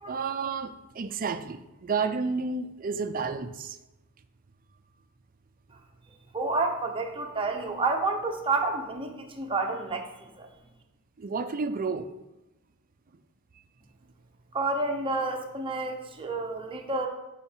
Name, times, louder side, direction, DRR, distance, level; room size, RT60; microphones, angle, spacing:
voice 1, 0.1-3.8 11.2-12.1, right 4 dB, 40° right, 0.5 m, -31 dB
voice 2, 6.3-10.5 14.5-17.1, right 3 dB, 25° right, 0.9 m, -30 dB
7.1 x 5.7 x 4.5 m
head